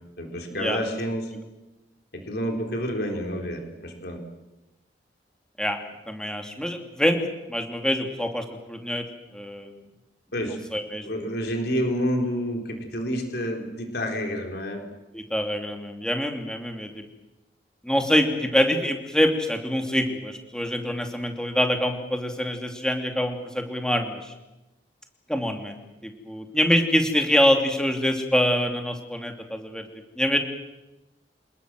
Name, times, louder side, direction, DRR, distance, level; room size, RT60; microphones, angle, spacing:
voice 1, 0.2-1.3 2.1-4.2 10.3-10.6 11.0-14.8, equal, 60° left, 3 dB, 4.1 m, -29 dB
voice 2, 6.1-7.2 7.5-9.0 9.3-9.7 10.7-11.3 15.1-17.0 17.8-24.3 25.3-29.9 30.2-30.4, equal, 5° left, 4 dB, 2.7 m, -25 dB
26.5 x 20.5 x 7.7 m, 0.99 s
head